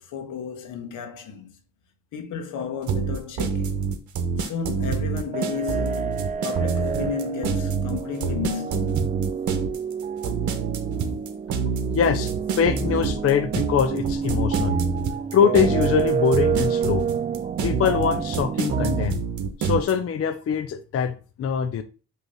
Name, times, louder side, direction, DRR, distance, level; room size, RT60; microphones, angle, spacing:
voice 1, 0.0-1.6 2.1-3.9 4.4-6.1 6.4-9.0, left 7 dB, 85° left, 1.4 m, -33 dB
sound 1, 2.9-19.9, right 5 dB, 75° right, 1.1 m, -26 dB
sound 2, 5.3-19.1, right 7 dB, 25° right, 0.4 m, -29 dB
voice 2, 11.9-14.8 15.2-17.2 17.6-19.2 19.6-21.8, left 7 dB, 50° left, 0.6 m, -23 dB
5.4 x 3.2 x 5.6 m
cardioid pair, 90°, 30 cm